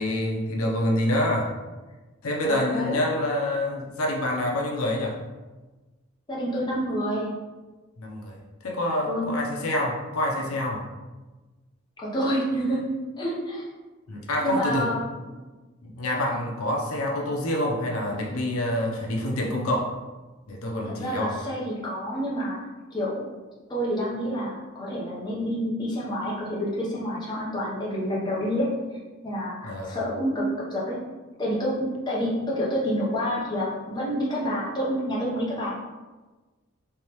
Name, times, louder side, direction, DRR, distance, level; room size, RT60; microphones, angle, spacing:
voice 1, 0.0-1.5 2.2-5.2 8.0-10.8 14.1-14.9 15.8-19.9 20.5-21.4 29.6-30.0, left 1 dB, 80° left, -1 dB, 0.6 m, -27 dB
voice 2, 2.4-3.0 6.3-7.3 9.1-9.3 12.0-12.8 13.2-13.7 14.4-15.1 20.9-22.6 22.9-23.3 23.7-28.7 29.2-30.4 30.7-31.0 31.4-35.7, equal, 20° left, -6 dB, 0.7 m, -28 dB
3.4 x 3.1 x 3.0 m, 1.2 s
head